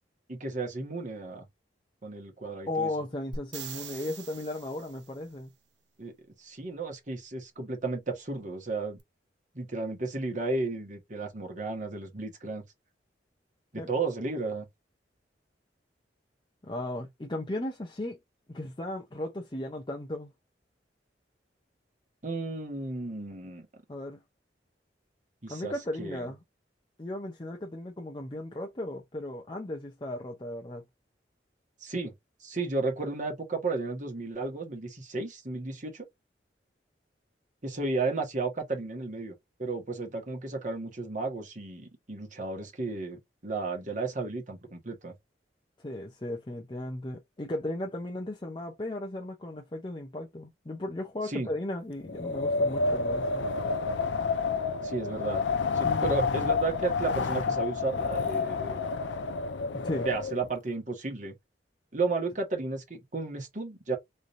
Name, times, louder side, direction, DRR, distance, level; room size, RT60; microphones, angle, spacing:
voice 1, 0.3-1.4 2.0-2.9 6.0-6.1 6.4-9.0 9.5-12.6 13.7-14.6 22.2-23.7 25.4-25.7 26.0-26.3 31.8-32.1 32.4-36.0 37.6-39.3 39.6-45.1 51.3-51.5 54.8-55.4 55.7-58.8 60.0-61.3 61.9-64.0, right 3 dB, 45° right, 1.5 m, -33 dB
voice 2, 2.7-5.5 13.8-13.9 16.6-18.2 18.5-20.3 23.9-24.2 25.5-26.4 27.0-30.8 45.8-53.5 55.8-56.3 59.7-60.1, left 1 dB, 25° left, 0.7 m, -36 dB
sound 1, 3.3-5.2 9.0-9.1, right 5 dB, 75° right, 0.9 m, -42 dB
Wind, 52.0-60.5, left 4 dB, 85° left, 0.5 m, -29 dB
3.7 x 3.3 x 2.6 m
head